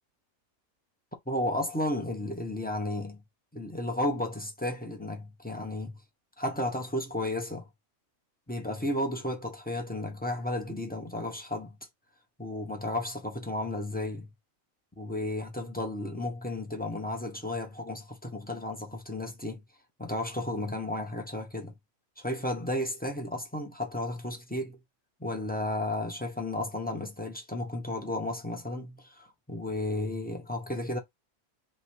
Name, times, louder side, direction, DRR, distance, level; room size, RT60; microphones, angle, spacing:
voice 1, 1.3-3.2 3.5-6.0 6.4-7.7 8.5-11.8 12.4-14.3 15.0-19.6 20.0-21.7 22.2-24.8 25.2-31.0, left 1 dB, 10° left, 0.6 m, -33 dB
3.2 x 3.0 x 4.4 m
omnidirectional pair, 1.5 m